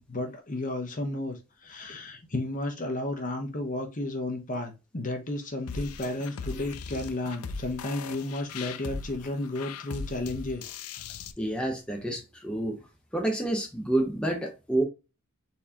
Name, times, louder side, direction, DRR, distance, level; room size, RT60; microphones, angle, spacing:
voice 1, 0.0-11.0, left 2 dB, 35° left, 0.9 m, -33 dB
sound 1, 5.7-11.3, left 4 dB, 80° left, 0.5 m, -39 dB
voice 2, 11.4-12.8 13.1-14.8, right 1 dB, 5° left, 0.9 m, -28 dB
4.2 x 4.0 x 2.9 m
head